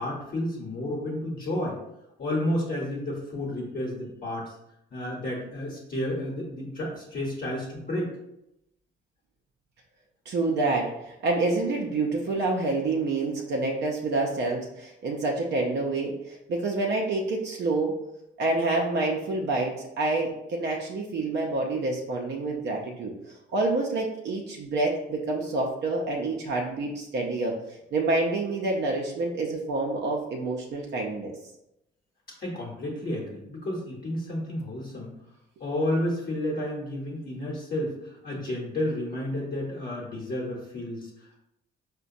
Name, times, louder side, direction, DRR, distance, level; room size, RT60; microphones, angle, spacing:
voice 1, 0.0-1.8 2.2-4.5 4.9-8.1 32.4-35.1 35.6-41.4, left 1 dB, 50° left, -4 dB, 0.9 m, -31 dB
voice 2, 10.3-17.9 18.4-31.3, right 2 dB, 60° right, -1 dB, 0.6 m, -28 dB
4.8 x 2.2 x 2.6 m, 0.84 s
cardioid pair, 90°, 20 cm